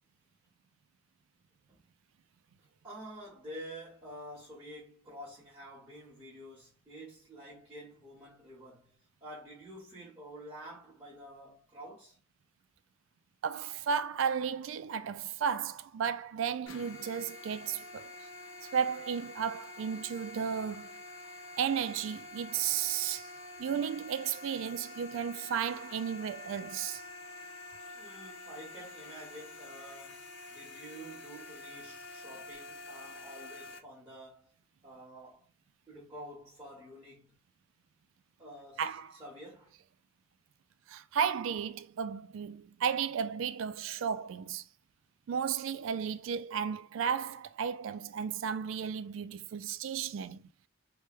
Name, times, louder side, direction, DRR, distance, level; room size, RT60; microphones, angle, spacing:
voice 1, 2.6-12.2 27.9-34.6 34.8-35.5 35.9-37.4 38.4-39.7, right 1 dB, 15° right, 1.4 m, -49 dB
voice 2, 13.4-18.1 18.6-21.0 21.6-23.3 23.6-27.0 38.8-39.1 40.9-44.6 45.3-50.5, right 7 dB, 70° right, 0.3 m, -34 dB
sound 1, 16.7-33.8, left 2 dB, 65° left, 0.6 m, -47 dB
3.2 x 2.2 x 3.1 m
head